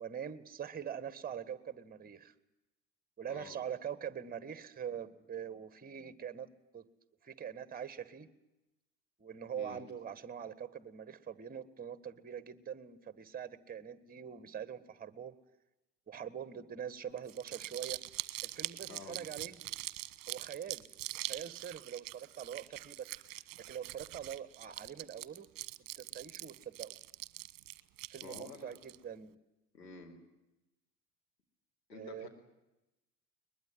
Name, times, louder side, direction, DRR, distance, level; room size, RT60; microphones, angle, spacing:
voice 1, 0.0-2.3 3.2-6.9 7.2-8.3 9.2-15.4 16.1-18.0 18.4-19.6 20.3-20.8 21.1-23.1 23.7-25.5 26.0-26.9 28.1-29.4 31.9-32.3, right 8 dB, 20° right, 15 dB, 1.6 m, -43 dB
voice 2, 3.3-3.7 9.6-9.8 18.9-19.2 28.2-28.8 29.7-30.2 31.9-32.3, left 4 dB, 85° left, 3 dB, 4.5 m, -49 dB
Crumpling crinkling, 17.2-29.0, right 18 dB, 40° right, 1.3 m, -43 dB
22.0 x 21.0 x 9.4 m, 0.98 s
figure-of-eight pair, 75°, 49 cm